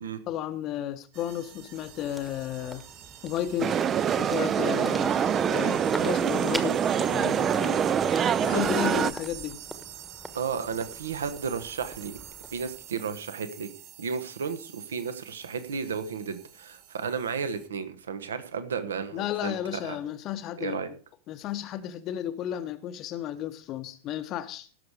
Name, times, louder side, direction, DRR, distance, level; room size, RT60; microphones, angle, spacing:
voice 1, 0.3-2.9 3.2-3.8 4.2-5.1 5.5-7.8 8.4-9.6 19.1-20.8 21.3-24.7, left 11 dB, 35° left, 0.8 m, -33 dB
sound 1, 1.1-17.7, right 11 dB, 40° right, 1.0 m, -47 dB
sound 2, 1.2-13.6, equal, 5° right, 1.3 m, -44 dB
sound 3, 3.6-9.1, right 8 dB, 25° right, 0.5 m, -25 dB
voice 2, 8.5-9.0 10.3-12.2 12.5-13.7 14.0-20.0 20.6-20.9, right 6 dB, 65° right, 1.2 m, -33 dB
17.0 x 6.7 x 5.0 m
figure-of-eight pair, 90°, 0 cm